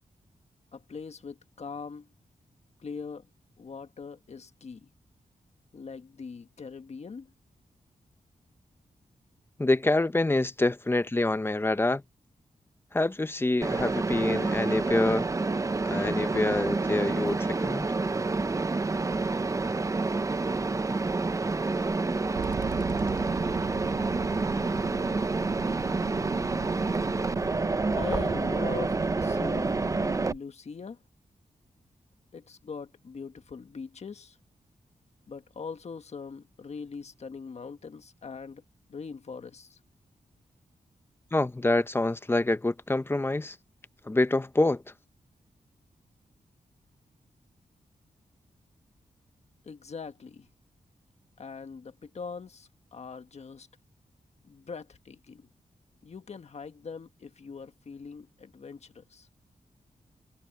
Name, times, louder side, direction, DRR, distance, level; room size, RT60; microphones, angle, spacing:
voice 1, 0.7-2.1 2.8-3.3 3.6-4.9 5.7-7.3 27.9-31.0 32.3-34.4 35.3-38.6 38.9-39.8 49.6-50.5 51.4-53.7 54.4-55.5 56.0-59.3, left 5 dB, 55° left, 1.4 m, -41 dB
voice 2, 9.6-12.0 12.9-15.3 15.9-17.9 41.3-43.6 44.1-44.8, left 2 dB, 15° left, 0.8 m, -26 dB
Mechanisms, 13.6-30.3, right 3 dB, 25° right, 0.6 m, -28 dB
sound 1, 22.4-30.4, right 8 dB, 80° right, 0.7 m, -39 dB
wide cardioid pair, 110°, 14 cm